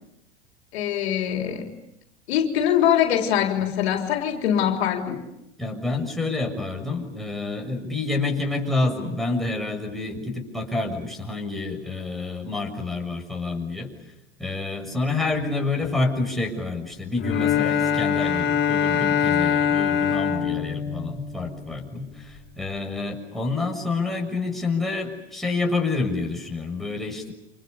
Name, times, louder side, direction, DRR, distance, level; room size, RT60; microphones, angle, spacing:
voice 1, 0.7-1.7 2.3-5.2, left 9 dB, 70° left, 4.0 m, -23 dB
voice 2, 5.6-13.9 14.4-27.3, left 3 dB, ahead, 7.0 m, -28 dB
Bowed string instrument, 17.2-21.8, left 8 dB, 35° left, 6.5 m, -23 dB
30.0 x 27.5 x 7.0 m
hypercardioid pair, 95°, 33 cm